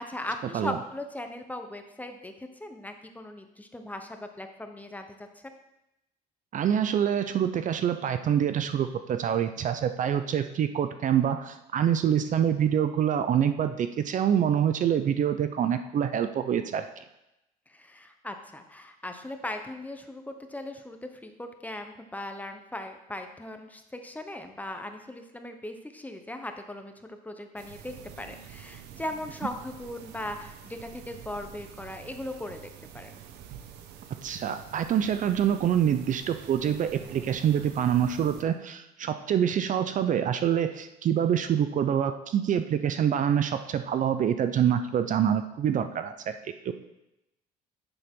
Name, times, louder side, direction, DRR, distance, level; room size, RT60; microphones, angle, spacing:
voice 1, 0.1-5.3 17.7-33.2, left 1 dB, 10° left, 6 dB, 0.9 m, -39 dB
voice 2, 6.5-16.8 34.2-46.3 46.6-46.7, right 9 dB, 50° right, 9 dB, 0.6 m, -26 dB
sound 1, 27.6-38.4, right 9 dB, 85° right, 0.9 m, -47 dB
10.0 x 6.9 x 3.7 m, 0.89 s
cardioid pair, 110°, 17 cm